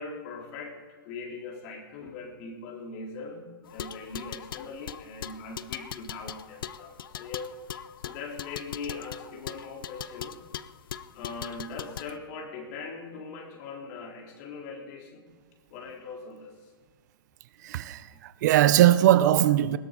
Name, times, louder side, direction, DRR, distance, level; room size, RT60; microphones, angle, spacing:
voice 1, 0.0-7.5 8.0-10.4 11.1-15.2 15.7-16.5 18.1-18.2, left 4 dB, 45° left, 4.0 m, -40 dB
sound 1, 3.7-12.1, left 9 dB, 75° left, 0.7 m, -40 dB
voice 2, 17.6-19.8, right 13 dB, 50° right, 0.7 m, -20 dB
20.0 x 16.5 x 4.1 m
hypercardioid pair, 140°, 12 cm